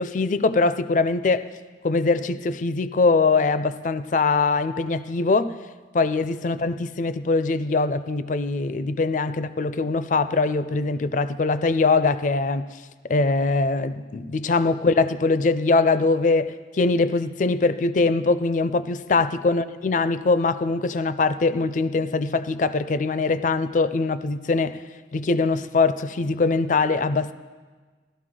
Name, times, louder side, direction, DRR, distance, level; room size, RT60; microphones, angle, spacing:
voice 1, 0.0-1.5 1.8-5.6 5.9-12.7 13.0-24.8 25.1-27.3, left 3 dB, 45° left, 0.4 m, -22 dB
16.5 x 12.5 x 3.7 m
head